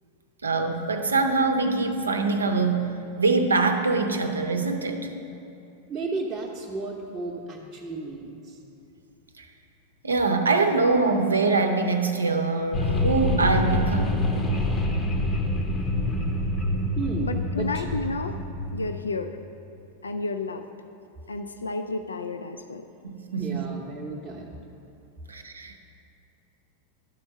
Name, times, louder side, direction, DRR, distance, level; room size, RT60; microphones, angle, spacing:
voice 1, 0.4-2.9 3.2-5.1 9.4-9.5 10.0-14.2 23.0-23.6 25.3-25.8, right 3 dB, 75° right, 5 dB, 0.6 m, -24 dB
voice 2, 5.9-8.6 17.0-17.9 23.4-24.6, right 3 dB, 15° right, -5 dB, 0.8 m, -34 dB
sound 1, 12.7-18.9, left 1 dB, 25° left, 0.8 m, -26 dB
voice 3, 17.2-18.4 18.7-19.4 20.0-20.6 21.3-22.9, left 3 dB, 75° left, 8 dB, 0.3 m, -31 dB
11.0 x 4.4 x 6.0 m, 2.7 s
figure-of-eight pair, 90°, 0 cm